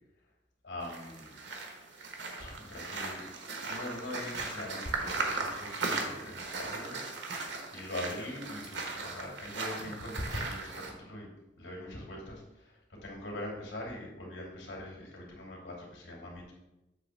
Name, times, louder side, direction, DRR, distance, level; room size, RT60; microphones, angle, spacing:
voice 1, 0.6-1.3 2.4-3.3 3.6-7.0 7.2-7.3 7.7-10.7 11.0-11.3 11.5-16.5, left 1 dB, 85° left, -2 dB, 2.6 m, -42 dB
sound 1, 0.8-10.9, right 3 dB, 70° right, 1.2 m, -38 dB
7.8 x 3.3 x 6.3 m, 0.96 s
head